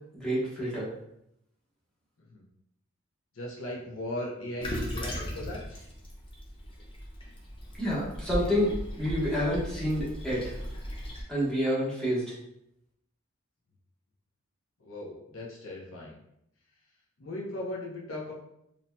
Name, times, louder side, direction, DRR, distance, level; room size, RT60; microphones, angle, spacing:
voice 1, 0.1-0.9 7.8-10.6 11.3-12.3, equal, 5° left, -9 dB, 1.1 m, -28 dB
voice 2, 3.3-5.8 14.8-16.2 17.2-18.3, left 1 dB, 70° left, -3 dB, 0.8 m, -38 dB
Toilet flush, 4.6-11.2, equal, 25° left, 0.6 m, -37 dB
4.1 x 2.7 x 2.2 m, 0.78 s
head